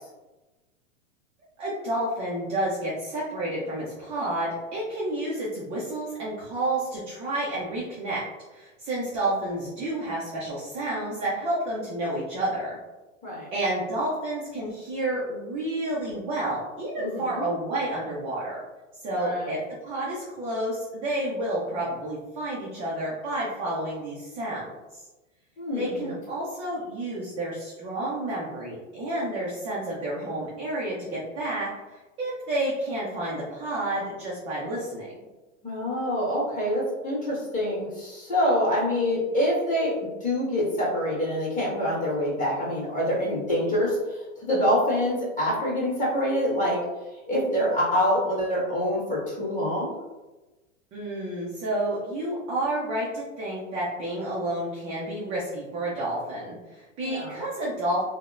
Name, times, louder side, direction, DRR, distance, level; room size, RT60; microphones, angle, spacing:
voice 1, 1.6-8.2 8.5-12.8 13.5-18.6 19.0-25.0 25.8-35.2 50.9-58.0, right 1 dB, 15° right, -7 dB, 0.3 m, -30 dB
voice 2, 17.0-17.4 19.2-19.5 25.6-26.1 35.6-46.8 47.3-49.9 57.0-57.4, equal, 20° left, -7 dB, 1.4 m, -26 dB
3.5 x 2.0 x 2.4 m, 1.1 s
hypercardioid pair, 125°, 40 cm